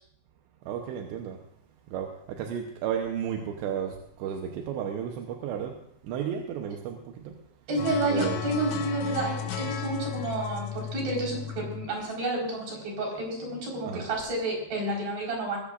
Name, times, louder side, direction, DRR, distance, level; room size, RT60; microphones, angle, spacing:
voice 1, 0.7-1.4 1.9-5.7 6.0-7.3 8.1-8.5 13.9-14.1, right 8 dB, 75° right, 3 dB, 2.9 m, -33 dB
voice 2, 7.7-15.6, right 2 dB, 50° right, -2 dB, 6.2 m, -30 dB
sound 1, 7.8-13.1, left 9 dB, 75° left, 3.2 m, -35 dB
20.5 x 15.5 x 2.5 m, 0.73 s
omnidirectional pair, 5.7 m